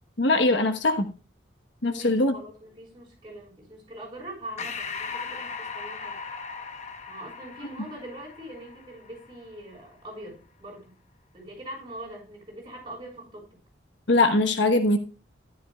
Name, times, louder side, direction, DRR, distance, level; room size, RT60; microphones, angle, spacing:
voice 1, 0.2-1.1 1.8-2.3 14.1-15.0, left 2 dB, 75° left, 7 dB, 1.2 m, -21 dB
voice 2, 1.8-6.2 7.1-10.9 11.3-13.6, right 1 dB, 25° right, -2 dB, 5.4 m, -42 dB
Breathing, 4.6-9.5, left 5 dB, 35° left, 0.8 m, -38 dB
13.0 x 10.5 x 2.4 m, 0.34 s
head